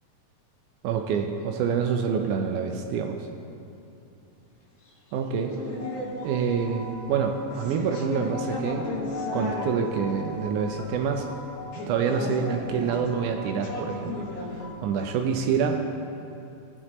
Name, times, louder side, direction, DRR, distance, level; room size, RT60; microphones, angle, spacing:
voice 1, 0.8-3.3 5.1-5.5 6.2-8.9 9.3-11.3 11.9-14.3 14.6-15.8, right 6 dB, 85° right, 4 dB, 2.1 m, -27 dB
sound 1, 5.4-14.7, left 2 dB, 75° left, 3.0 m, -35 dB
19.0 x 6.5 x 3.0 m, 2.8 s
omnidirectional pair, 3.6 m